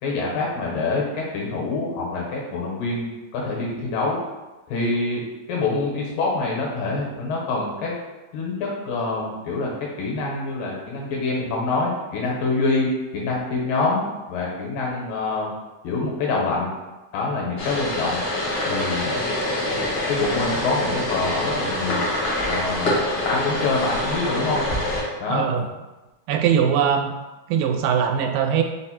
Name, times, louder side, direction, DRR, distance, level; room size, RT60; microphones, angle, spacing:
voice 1, 0.0-4.2 4.7-5.2 5.5-7.9 8.3-15.5 15.8-16.7 17.1-18.2 18.7-19.2 20.1-22.0 22.5-23.0 23.3-24.6 25.2-25.5, left 3 dB, 85° left, -3 dB, 2.7 m, -25 dB
sound 1, 17.6-25.0, left 1 dB, 65° left, 1.2 m, -25 dB
voice 2, 25.3-25.7 26.3-27.1 27.5-28.6, right 8 dB, 85° right, 4 dB, 2.2 m, -21 dB
5.4 x 2.1 x 4.2 m, 1.1 s
omnidirectional pair, 3.7 m